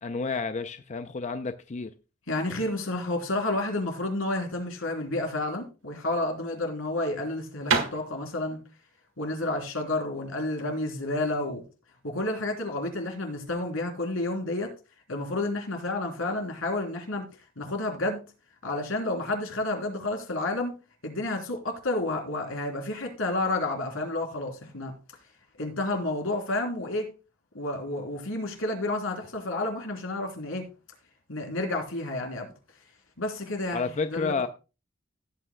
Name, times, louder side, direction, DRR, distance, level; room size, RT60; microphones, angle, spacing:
voice 1, 0.0-1.9 33.7-34.5, left 4 dB, 35° left, 0.5 m, -30 dB
voice 2, 2.3-8.6 9.2-11.6 12.0-14.7 15.1-17.3 17.6-18.2 18.6-20.8 21.0-24.9 25.6-27.0 27.5-30.7 31.3-32.5 33.2-34.5, left 2 dB, 90° left, 3.3 m, -30 dB
sound 1, 5.8-11.4, right 5 dB, 70° right, 1.7 m, -33 dB
16.5 x 8.6 x 2.2 m
head